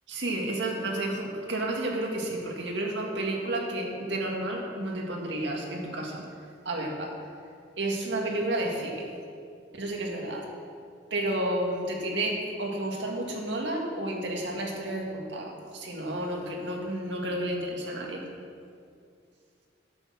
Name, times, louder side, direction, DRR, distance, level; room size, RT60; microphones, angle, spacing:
voice 1, 0.1-6.3 6.6-7.2 7.8-9.1 9.7-10.5 11.1-18.2, right 1 dB, 80° right, 0 dB, 2.0 m, -31 dB
10.5 x 8.2 x 6.0 m, 2.3 s
head